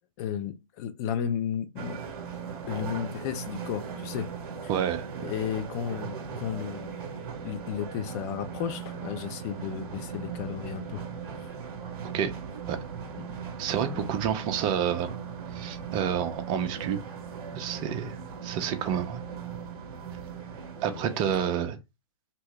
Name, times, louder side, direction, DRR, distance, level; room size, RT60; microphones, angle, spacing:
voice 1, 0.2-2.0 2.5-4.3 4.6-4.7 5.2-11.0 11.3-11.5 13.2-13.3 13.9-14.1 20.9-21.1, left 8 dB, 30° left, 0.4 m, -34 dB
sound 1, 1.8-21.6, right 6 dB, 40° right, 0.9 m, -39 dB
voice 2, 4.7-5.1 12.1-12.3 12.7-12.8 13.6-15.1 15.5-17.0 17.5-19.2 20.8-21.8, right 8 dB, 25° right, 0.5 m, -29 dB
2.8 x 2.7 x 3.2 m
figure-of-eight pair, 120°, 18 cm